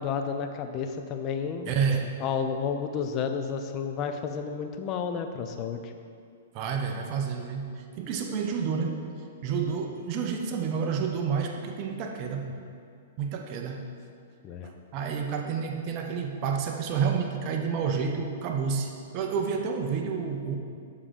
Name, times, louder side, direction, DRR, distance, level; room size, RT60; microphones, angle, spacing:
voice 1, 0.0-1.8 2.2-5.9 14.4-14.7, left 6 dB, 30° left, 6 dB, 0.5 m, -31 dB
voice 2, 1.7-2.2 6.5-9.0 9.4-12.6 13.2-13.9 14.6-20.6, right 6 dB, 35° right, 3 dB, 0.6 m, -29 dB
7.1 x 3.6 x 4.9 m, 2.3 s
hypercardioid pair, 145°, 0 cm